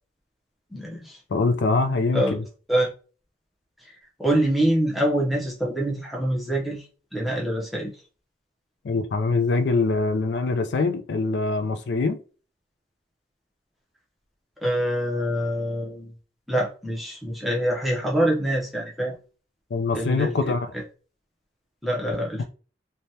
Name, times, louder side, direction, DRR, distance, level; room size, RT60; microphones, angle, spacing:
voice 1, 0.7-1.2 2.1-2.4 2.7-2.9 3.8-3.9 4.2-6.8 7.1-7.9 14.6-16.1 16.5-19.2 19.9-20.8 21.8-22.4, right 1 dB, ahead, 0.5 m, -25 dB
voice 2, 1.3-2.4 8.8-12.2 19.7-20.7, left 3 dB, 75° left, 0.4 m, -23 dB
3.2 x 2.1 x 2.7 m
head